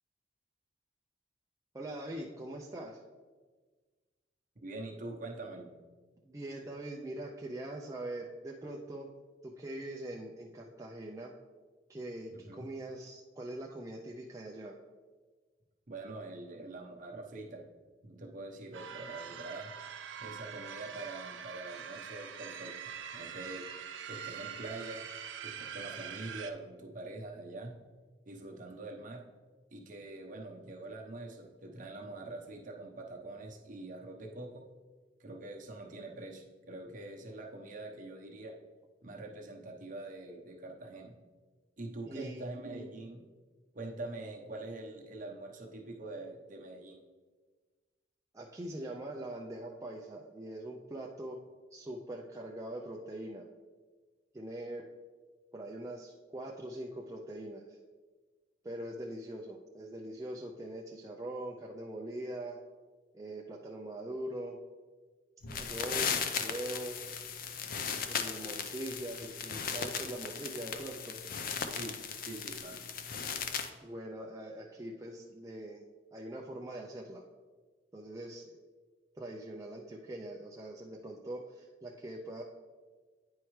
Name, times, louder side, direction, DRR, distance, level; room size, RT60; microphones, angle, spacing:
voice 1, 1.7-3.0 6.2-9.1 9.4-11.3 11.9-14.8 42.0-42.5 48.3-51.4 51.7-53.5 54.3-54.8 55.5-57.8 58.6-62.6 63.1-64.6 65.5-67.0 68.0-71.2 73.8-75.8 76.1-77.2 77.9-78.6 79.2-82.4, right 1 dB, 15° right, -1 dB, 0.4 m, -42 dB
voice 2, 4.6-5.7 12.3-12.7 15.9-17.6 18.0-19.7 20.2-22.7 23.1-23.6 24.0-25.0 25.4-27.7 28.3-29.2 29.7-34.6 35.2-38.5 39.0-41.1 41.8-43.2 43.7-47.0 71.8-72.8, right 2 dB, 45° right, 1 dB, 0.9 m, -44 dB
sound 1, 18.7-26.5, right 8 dB, 90° right, 0.6 m, -44 dB
sound 2, 65.4-73.7, left 6 dB, 50° left, 0.5 m, -37 dB
9.6 x 4.6 x 3.1 m, 1.4 s
head